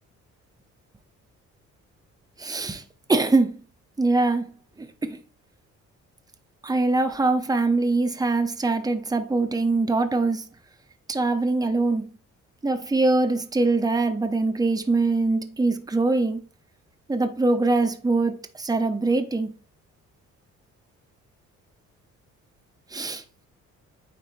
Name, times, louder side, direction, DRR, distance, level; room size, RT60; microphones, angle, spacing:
voice 1, 2.4-2.8 3.1-3.6 4.0-4.5 4.8-5.2 6.6-10.4 11.1-12.1 12.6-16.4 17.1-19.5 22.9-23.2, right 3 dB, 10° right, 0.8 m, -23 dB
9.1 x 3.3 x 3.2 m
cardioid pair, 90°, 30 cm